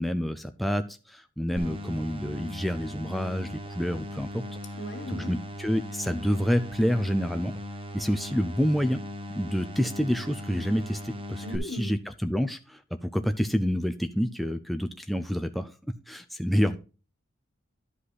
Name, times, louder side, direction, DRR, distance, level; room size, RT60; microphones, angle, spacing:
voice 1, 0.0-4.4 5.1-7.5 7.9-9.0 9.3-15.7 16.1-16.8, equal, ahead, 0.5 m, -28 dB
sound 1, 1.6-11.6, equal, 30° right, 1.1 m, -39 dB
voice 2, 4.8-5.4 11.4-12.1, equal, 60° left, 1.6 m, -37 dB
11.5 x 5.4 x 4.0 m
head